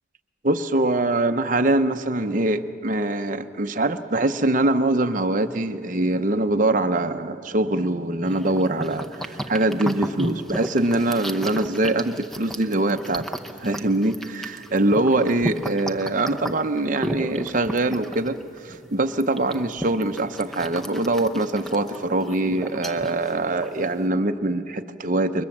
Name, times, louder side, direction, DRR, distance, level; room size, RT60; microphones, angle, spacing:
voice 1, 0.4-13.3 13.6-18.4 18.6-25.4, right 2 dB, 40° right, 7 dB, 0.7 m, -23 dB
sound 1, 8.2-24.1, equal, ahead, 0.7 m, -34 dB
28.5 x 23.0 x 7.3 m, 2.7 s
head